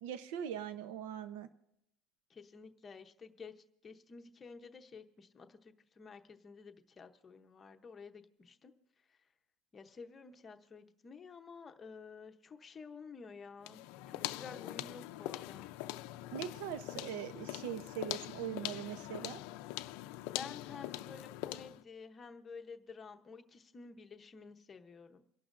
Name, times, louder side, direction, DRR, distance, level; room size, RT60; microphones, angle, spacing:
voice 1, 0.0-1.5 16.3-19.4, right 9 dB, 85° right, 11 dB, 0.7 m, -41 dB
voice 2, 2.3-8.7 9.1-9.2 9.7-15.7 20.2-25.2, left 5 dB, 15° left, 5 dB, 0.8 m, -51 dB
sound 1, 13.6-21.8, left 16 dB, 65° left, 0.5 m, -43 dB
28.0 x 11.5 x 2.6 m, 0.77 s
cardioid pair, 175°, 0 cm